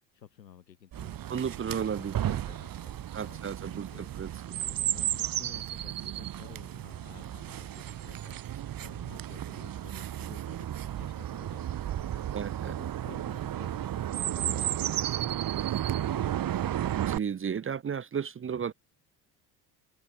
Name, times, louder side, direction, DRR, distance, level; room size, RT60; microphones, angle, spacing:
voice 1, 0.1-1.7 2.0-12.2 12.6-16.4, left 9 dB, 85° left, 6.8 m, -54 dB
Chirp tweet, 0.9-17.2, right 11 dB, 45° right, 2.3 m, -33 dB
voice 2, 1.3-2.4 3.1-3.9 4.2-4.3 12.3-12.7 16.9-18.7, right 7 dB, 25° right, 1.1 m, -33 dB
figure-of-eight pair, 60°, 49 cm